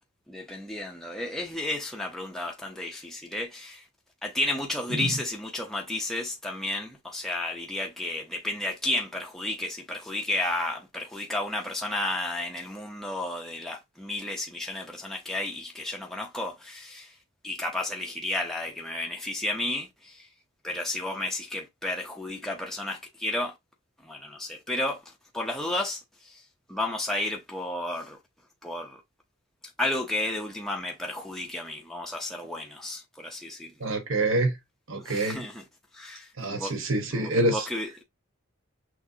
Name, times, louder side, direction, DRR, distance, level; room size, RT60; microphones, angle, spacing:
voice 1, 0.3-3.8 4.2-17.1 17.4-20.3 20.6-23.5 24.0-25.0 25.3-26.4 26.7-28.2 28.6-29.0 29.8-33.7 35.0-35.6 35.9-36.7 37.1-38.0, left 1 dB, ahead, 0.6 m, -32 dB
voice 2, 33.8-34.6 34.9-35.4 36.4-37.7, right 2 dB, 65° right, 1.0 m, -26 dB
6.0 x 2.6 x 2.7 m
head